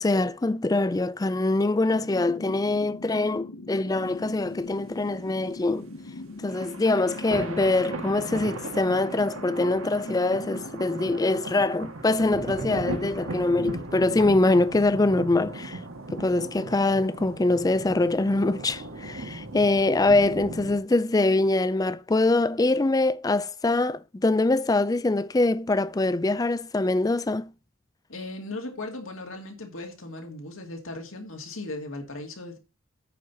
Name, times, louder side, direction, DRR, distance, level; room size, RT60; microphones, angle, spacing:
voice 1, 0.0-5.9 6.4-15.8 16.1-27.5, left 2 dB, 15° left, 0.4 m, -24 dB
sound 1, 1.9-11.2, left 2 dB, 90° left, 1.1 m, -42 dB
sound 2, 3.9-20.8, right 2 dB, 80° right, 1.8 m, -37 dB
voice 2, 28.1-32.6, left 2 dB, 75° left, 2.3 m, -37 dB
9.2 x 4.3 x 7.1 m
head